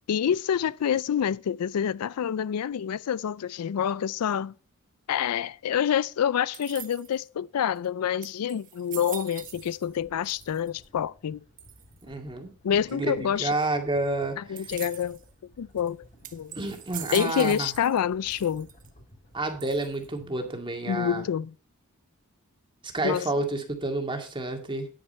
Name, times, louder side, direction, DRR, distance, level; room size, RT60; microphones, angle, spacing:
voice 1, 0.1-4.5 5.1-11.4 12.6-13.5 14.4-15.2 15.6-16.0 16.3-16.6 17.1-18.7 20.9-21.5 23.0-23.3, left 8 dB, 80° left, 0.4 m, -27 dB
sound 1, 6.5-7.3 7.8-7.9 8.2-10.0 10.2-10.8 11.6-12.0 14.6-15.2 15.8-15.9 16.2-18.0 18.3-18.9 19.6-20.2, right 10 dB, 40° right, 1.1 m, -42 dB
sound 2, 9.3-20.7, left 1 dB, 35° left, 4.7 m, -56 dB
voice 2, 12.0-12.5 12.9-14.4 16.6-17.7 19.3-21.2 22.9-24.9, right 2 dB, 20° right, 2.1 m, -29 dB
9.9 x 8.9 x 4.2 m
head